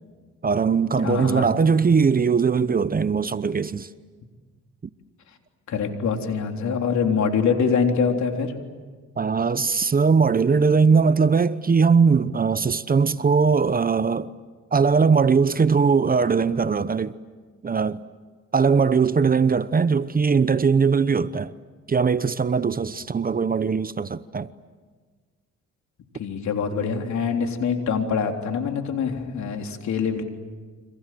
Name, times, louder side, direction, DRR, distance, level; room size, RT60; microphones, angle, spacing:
voice 1, 0.4-3.9 9.2-14.3 14.7-17.2 17.6-18.0 18.5-21.5 21.9-24.5, right 5 dB, 30° right, 0.9 m, -20 dB
voice 2, 1.0-1.5 5.7-8.5 26.1-30.2, left 6 dB, 70° left, 3.7 m, -24 dB
30.0 x 26.0 x 7.7 m
cardioid pair, 90°, 30 cm